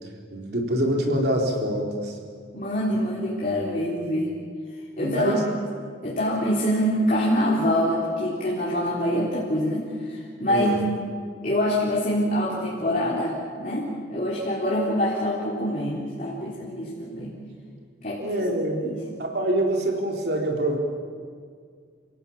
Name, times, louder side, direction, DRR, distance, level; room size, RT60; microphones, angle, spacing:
voice 1, 0.3-2.2 5.0-5.4 10.5-10.9 18.2-18.8 19.2-20.8, right 1 dB, 55° right, 1 dB, 4.0 m, -25 dB
voice 2, 2.5-4.4 5.0-5.4 6.0-10.8 11.4-17.3 18.0-18.4 18.8-19.0, equal, 45° left, -6 dB, 3.9 m, -25 dB
29.0 x 17.5 x 8.8 m, 2.1 s
head